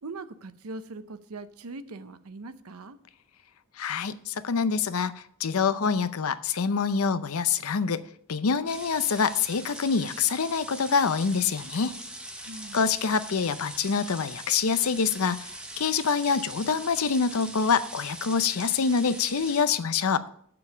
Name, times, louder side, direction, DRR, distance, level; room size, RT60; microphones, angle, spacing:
voice 1, 0.0-3.0 12.4-12.8, right 3 dB, 75° right, 12 dB, 0.7 m, -41 dB
voice 2, 3.8-8.0 8.3-11.9 12.7-20.2, left 5 dB, 70° left, 13 dB, 0.6 m, -26 dB
sound 1, 8.7-19.6, right 1 dB, 5° right, 0.9 m, -41 dB
7.0 x 6.9 x 7.1 m, 0.64 s
head